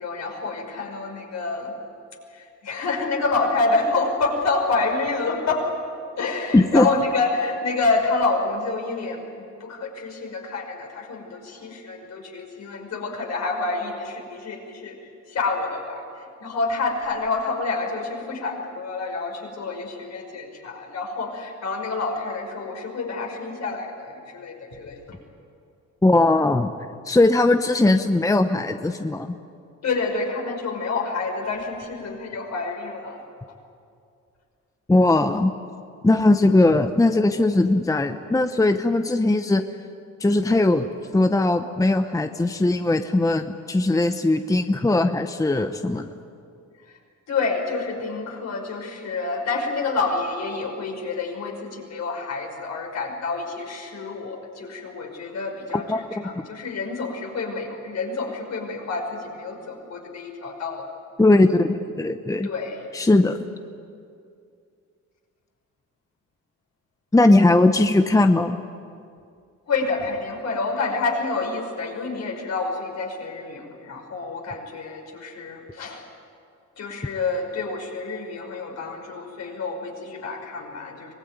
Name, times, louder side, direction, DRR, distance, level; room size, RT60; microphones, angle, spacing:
voice 1, 0.0-1.7 2.3-5.7 6.2-9.3 9.6-15.0 15.3-25.0 29.8-33.2 46.9-47.0 47.3-60.8 62.4-62.9 69.7-76.1 76.8-81.1, left 3 dB, 60° left, 2 dB, 5.6 m, -28 dB
voice 2, 6.5-6.9 26.0-26.7 27.1-29.3 34.9-35.5 36.0-39.6 40.2-40.9 41.1-46.1 55.9-56.2 61.2-62.5 62.9-63.4 67.1-68.6, left 2 dB, 10° left, 8 dB, 0.9 m, -19 dB
24.0 x 19.0 x 9.3 m, 2.4 s
cardioid pair, 90°, 30 cm